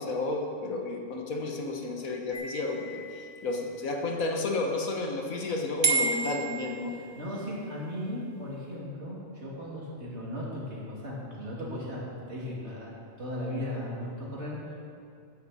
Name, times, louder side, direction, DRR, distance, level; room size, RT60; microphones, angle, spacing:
voice 1, 0.0-6.9, left 2 dB, 85° left, 1 dB, 1.7 m, -32 dB
sound 1, 2.3-3.9 5.8-7.4, right 3 dB, 20° right, 1.1 m, -31 dB
voice 2, 6.9-12.9 13.2-14.8, left 1 dB, 55° right, -5 dB, 2.9 m, -37 dB
13.5 x 9.7 x 4.2 m, 2.4 s
omnidirectional pair, 1.4 m